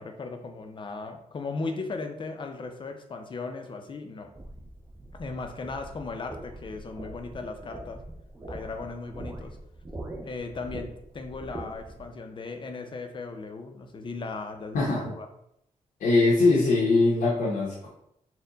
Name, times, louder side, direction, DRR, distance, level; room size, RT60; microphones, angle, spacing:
voice 1, 0.0-4.3 5.1-8.0 8.5-9.6 10.2-15.3, left 3 dB, 40° left, 5 dB, 0.5 m, -37 dB
sound 1, 4.3-12.1, right 1 dB, 15° right, 0.5 m, -42 dB
voice 2, 14.7-15.1 16.0-17.9, left 3 dB, 90° left, -6 dB, 0.9 m, -22 dB
4.2 x 2.1 x 3.8 m, 0.76 s
wide cardioid pair, 145°, 13 cm